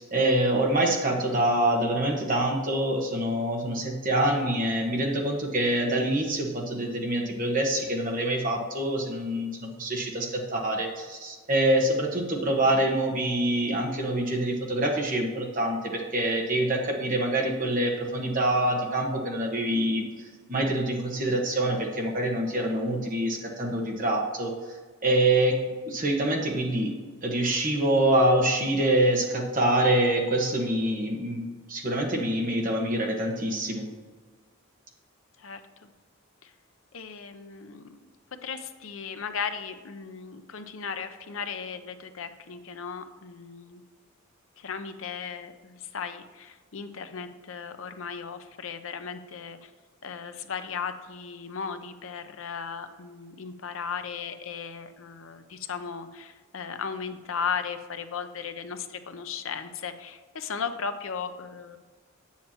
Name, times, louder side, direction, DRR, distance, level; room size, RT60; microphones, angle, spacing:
voice 1, 0.0-20.1 20.5-24.5 25.0-26.9 27.2-31.4 31.7-33.9, right 1 dB, 40° right, 1 dB, 1.3 m, -25 dB
voice 2, 35.4-35.9 36.4-36.5 36.9-38.1 38.4-43.8 44.6-49.7 50.0-61.8, left 6 dB, 70° left, 8 dB, 0.6 m, -36 dB
8.8 x 7.2 x 2.9 m, 1.4 s
head